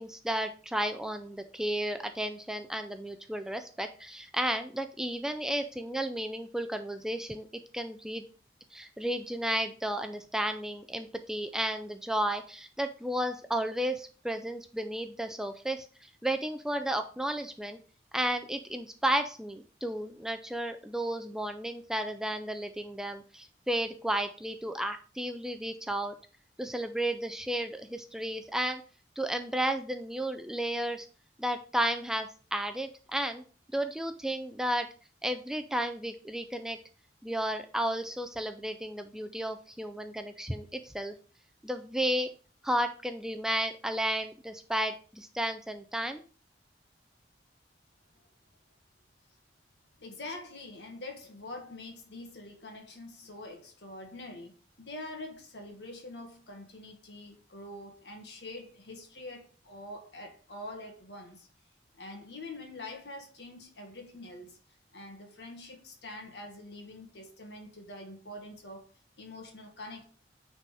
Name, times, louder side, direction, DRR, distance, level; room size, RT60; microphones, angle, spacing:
voice 1, 0.0-7.5 7.7-8.3 8.7-17.8 18.1-26.1 26.6-28.8 29.2-31.1 31.4-33.4 33.7-34.9 35.2-36.8 37.2-41.1 41.6-42.3 42.6-46.2, right 1 dB, 5° right, 0.4 m, -33 dB
voice 2, 50.0-54.5 54.8-61.5 62.0-64.6 64.9-68.9 69.2-70.0, left 2 dB, 70° left, 1.9 m, -45 dB
9.3 x 4.2 x 3.4 m
head